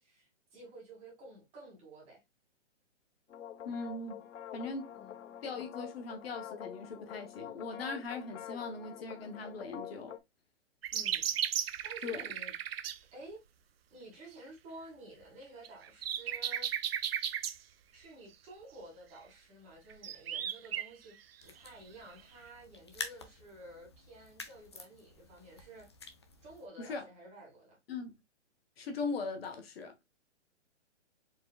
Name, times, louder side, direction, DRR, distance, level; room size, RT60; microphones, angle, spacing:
voice 1, 0.0-2.2 4.9-5.4 10.9-11.3 11.8-12.5 13.1-13.4 13.9-16.7 17.9-25.9 26.4-27.8, right 1 dB, 20° right, 2.1 m, -52 dB
sound 1, 3.3-10.2, left 9 dB, 85° left, 0.9 m, -46 dB
voice 2, 3.6-4.3 4.5-4.9 5.4-10.1 12.0-12.2 26.8-27.0 27.9-28.2 28.8-29.9, left 4 dB, 55° left, 1.1 m, -40 dB
sound 2, 10.8-13.0 15.6-17.6 19.9-20.9 22.2-22.3, right 10 dB, 55° right, 0.5 m, -35 dB
sound 3, 21.4-26.7, left 4 dB, 25° left, 0.3 m, -48 dB
4.5 x 3.7 x 2.2 m
hypercardioid pair, 160°, 36 cm